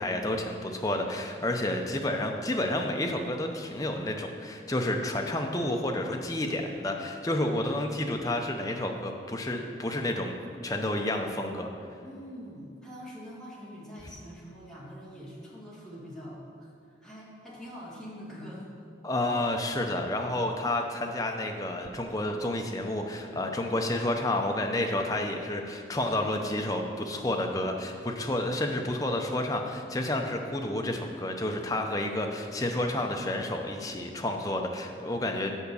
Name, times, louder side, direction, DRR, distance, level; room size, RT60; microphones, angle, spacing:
voice 1, 0.0-10.3 10.6-11.7 19.0-35.5, left 1 dB, 20° left, 3 dB, 0.6 m, -30 dB
voice 2, 12.0-18.8 25.1-25.3, equal, 5° left, -7 dB, 1.8 m, -44 dB
7.2 x 5.1 x 6.8 m, 2.4 s
head